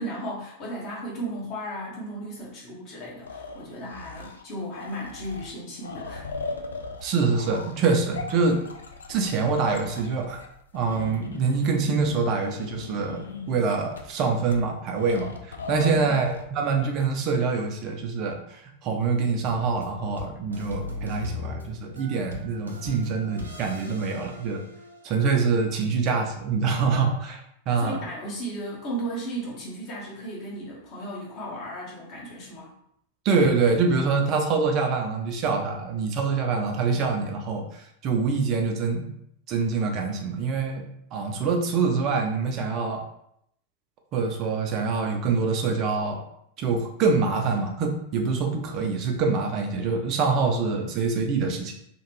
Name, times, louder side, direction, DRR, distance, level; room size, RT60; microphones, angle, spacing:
voice 1, 0.0-6.3 15.9-16.2 27.8-32.7, right 1 dB, 40° left, -5 dB, 1.2 m, -35 dB
sound 1, 3.2-4.4 4.7-13.6 13.9-14.0 14.5-14.6 15.0-16.4, left 4 dB, 70° left, 0.4 m, -38 dB
voice 2, 7.0-8.6 9.1-10.4 10.7-24.6 25.0-28.0 33.2-39.1 39.5-40.8 41.1-43.0 44.1-46.2 46.6-51.7, right 4 dB, 35° right, 3 dB, 0.6 m, -25 dB
sound 2, 19.4-25.2, left 2 dB, 80° right, 0.5 m, -39 dB
2.9 x 2.4 x 3.1 m, 0.74 s
figure-of-eight pair, 90°, 0 cm